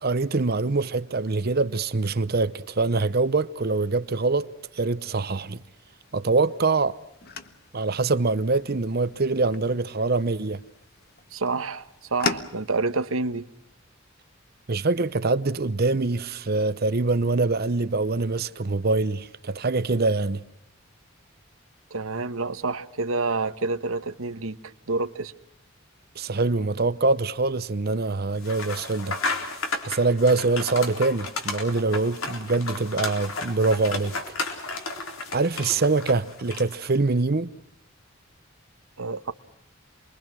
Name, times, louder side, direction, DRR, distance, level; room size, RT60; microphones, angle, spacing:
voice 1, 0.0-4.5 4.7-5.6 6.1-6.9 7.7-10.6 14.7-20.4 26.2-29.2 29.8-34.1 35.3-37.5, right 3 dB, 50° right, 0.8 m, -24 dB
sound 1, 5.7-13.0, left 4 dB, 50° left, 1.5 m, -38 dB
voice 2, 11.3-13.4 21.9-25.3 39.0-39.3, right 3 dB, 80° right, 1.2 m, -28 dB
sound 2, 28.4-36.9, left 3 dB, 80° left, 4.1 m, -33 dB
28.5 x 22.5 x 6.2 m
head